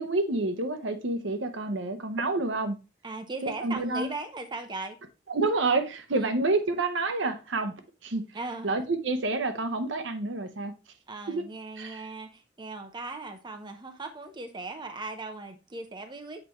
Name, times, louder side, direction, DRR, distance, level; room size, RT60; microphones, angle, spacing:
voice 1, 0.0-2.8 3.4-4.1 5.3-7.7 8.0-8.2 8.6-10.7 11.3-11.4 11.8-12.0, right 2 dB, 70° right, 0.8 m, -28 dB
voice 2, 3.0-5.0 6.2-6.3 8.3-8.7 11.1-16.4, right 3 dB, 25° right, 0.7 m, -38 dB
7.5 x 4.5 x 3.0 m
head